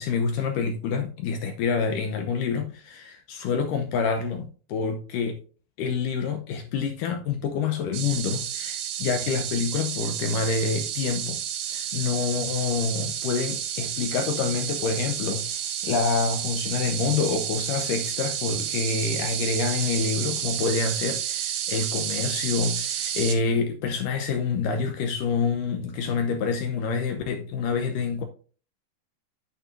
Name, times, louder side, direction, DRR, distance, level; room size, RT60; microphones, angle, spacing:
voice 1, 0.0-5.4 5.8-11.4 11.7-28.2, left 5 dB, 75° left, 2.1 m, -27 dB
sound 1, 7.9-23.4, right 10 dB, 85° right, 3.0 m, -31 dB
9.0 x 8.9 x 2.6 m
omnidirectional pair, 4.5 m